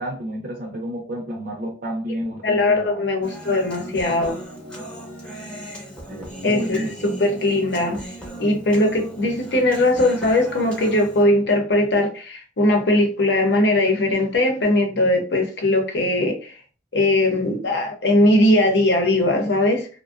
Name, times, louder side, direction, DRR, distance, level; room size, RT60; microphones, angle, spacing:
voice 1, 0.0-3.0 4.7-4.9 6.1-7.2, equal, 60° right, 1 dB, 0.5 m, -31 dB
voice 2, 2.4-4.4 6.4-8.0 8.4-16.5 16.9-19.9, left 1 dB, 70° left, 2 dB, 0.7 m, -20 dB
Human voice, 3.2-11.2, right 1 dB, 5° left, 0.6 m, -37 dB
2.5 x 2.1 x 2.3 m, 0.38 s
head